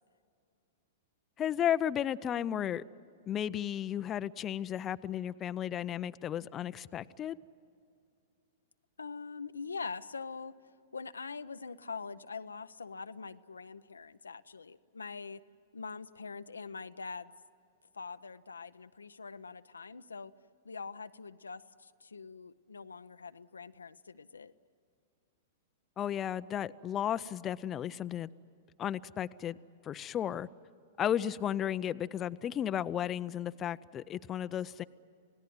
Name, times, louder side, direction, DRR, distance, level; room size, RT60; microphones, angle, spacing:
voice 1, 1.4-2.8 3.3-7.4 26.0-28.3 28.8-29.6 29.8-30.5 31.0-34.8, left 10 dB, 30° left, 14 dB, 0.5 m, -34 dB
voice 2, 9.0-10.5 10.9-15.4 15.7-17.3 17.9-20.3 20.6-24.5, left 4 dB, 90° left, 11 dB, 0.6 m, -43 dB
28.5 x 17.5 x 9.5 m, 2.5 s
hypercardioid pair, 110°, 0 cm